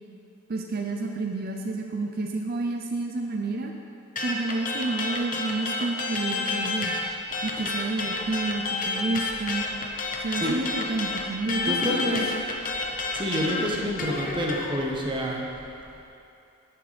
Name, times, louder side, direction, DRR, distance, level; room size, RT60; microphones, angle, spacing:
voice 1, 0.5-3.7 4.2-7.0 7.4-9.6 10.2-12.2, right 3 dB, 45° right, 2 dB, 0.5 m, -30 dB
sound 1, 4.2-7.0 7.3-14.7, left 3 dB, 40° left, 0.8 m, -29 dB
voice 2, 11.6-12.3 13.1-15.4, equal, 20° right, -1 dB, 1.1 m, -28 dB
10.0 x 9.3 x 3.4 m, 2.7 s
head